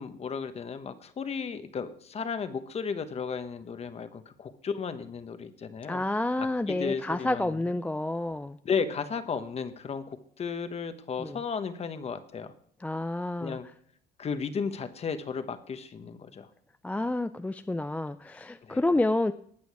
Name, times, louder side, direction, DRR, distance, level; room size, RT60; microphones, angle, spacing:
voice 1, 0.0-6.0 6.7-7.8 8.6-12.5 13.4-13.7 14.2-16.5 18.6-18.8, left 6 dB, 40° left, 10 dB, 1.1 m, -34 dB
voice 2, 5.9-8.6 11.2-11.4 12.8-13.6 16.8-19.3, left 2 dB, 10° left, 10 dB, 0.3 m, -29 dB
18.5 x 6.3 x 4.8 m, 0.62 s
cardioid pair, 110°, 17 cm